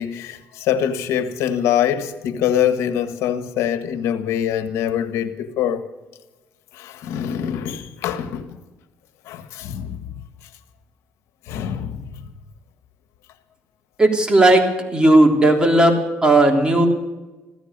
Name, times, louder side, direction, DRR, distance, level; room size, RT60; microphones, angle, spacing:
voice 1, 0.0-5.8 6.7-8.6 9.3-10.1 11.5-12.0, left 9 dB, 85° left, 1.4 m, -24 dB
voice 2, 14.0-14.6 14.9-16.9, right 1 dB, 20° right, 3.4 m, -15 dB
16.0 x 13.5 x 6.6 m
cardioid pair, 90°, 5 cm